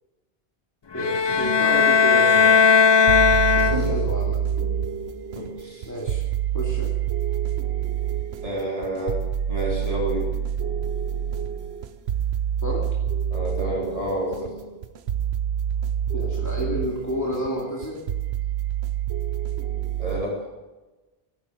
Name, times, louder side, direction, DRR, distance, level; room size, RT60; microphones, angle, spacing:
sound 1, 0.9-4.2, left 5 dB, 35° left, 0.5 m, -18 dB
voice 1, 0.9-2.6 3.4-4.4 5.8-6.2 6.5-6.9 12.6-12.9 16.1-18.0, equal, 15° left, -4 dB, 2.4 m, -30 dB
sound 2, 3.0-20.2, right 9 dB, 80° right, 1.1 m, -27 dB
voice 2, 3.6-4.0 5.4-5.9 8.4-9.2 9.5-10.3 13.3-14.5 20.0-20.5, right 1 dB, 35° right, -5 dB, 3.9 m, -29 dB
16.0 x 10.5 x 7.8 m, 1.1 s
omnidirectional pair, 1.1 m